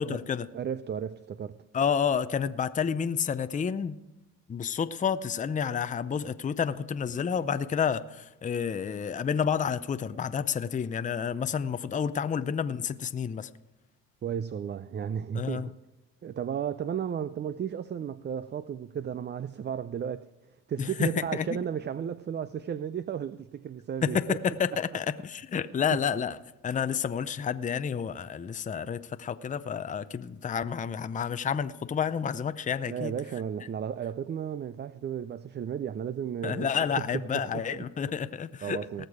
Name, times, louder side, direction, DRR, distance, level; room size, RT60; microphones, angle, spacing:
voice 1, 0.0-0.5 1.7-4.0 4.5-13.5 15.3-15.7 20.8-21.6 24.0-26.4 26.6-33.1 36.4-39.1, left 7 dB, 25° left, 0.5 m, -30 dB
voice 2, 0.5-1.6 14.2-15.7 16.2-20.3 20.7-24.4 25.9-26.0 32.9-36.7 37.0-37.6 38.6-39.1, right 8 dB, 30° right, 0.4 m, -34 dB
18.5 x 6.7 x 4.9 m
supercardioid pair, 75°, 34 cm